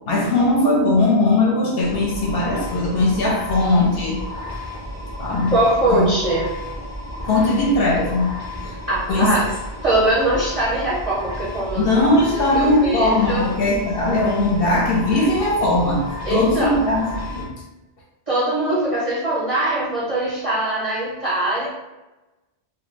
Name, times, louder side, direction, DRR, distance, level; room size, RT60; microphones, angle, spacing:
voice 1, 0.1-4.2 5.2-5.5 5.9-6.1 7.3-8.8 9.1-9.5 11.7-17.5, left 2 dB, 65° left, -2 dB, 0.7 m, -19 dB
sound 1, 1.8-17.4, left 1 dB, 25° left, 0.4 m, -32 dB
voice 2, 5.5-6.5 8.9-9.4 9.8-11.8 12.5-13.5 16.2-16.8 18.3-21.7, right 1 dB, 40° right, -8 dB, 0.5 m, -21 dB
2.1 x 2.0 x 3.1 m, 1.0 s
omnidirectional pair, 1.2 m